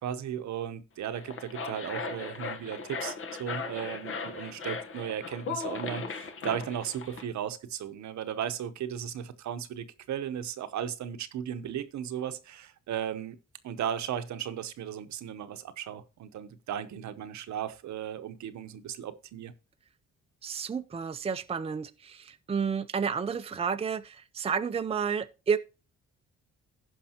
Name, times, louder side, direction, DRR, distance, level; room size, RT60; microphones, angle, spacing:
voice 1, 0.0-13.4 13.6-19.5, right 9 dB, 65° right, 0.9 m, -36 dB
sound 1, 1.0-7.3, left 4 dB, 45° left, 1.1 m, -37 dB
voice 2, 20.4-25.6, right 6 dB, 20° right, 0.6 m, -31 dB
16.0 x 5.4 x 2.9 m
cardioid pair, 90°, 30 cm